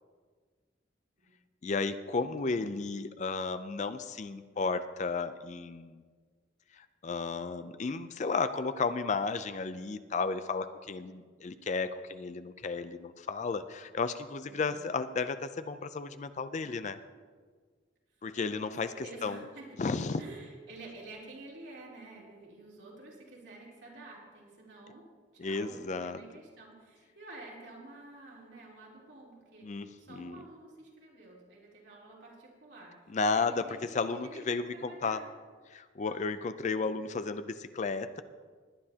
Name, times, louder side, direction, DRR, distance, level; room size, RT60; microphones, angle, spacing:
voice 1, 1.6-6.0 6.7-17.0 18.2-19.4 19.8-20.2 25.4-26.2 29.6-30.4 33.1-35.2 35.7-38.2, left 4 dB, 40° left, 12 dB, 0.4 m, -33 dB
voice 2, 2.2-2.7 14.4-14.8 18.6-19.7 20.2-25.1 25.4-29.7 30.0-32.9 33.3-35.3 36.0-36.3, right 2 dB, 70° right, -4 dB, 3.1 m, -50 dB
20.0 x 9.8 x 2.8 m, 1.5 s
head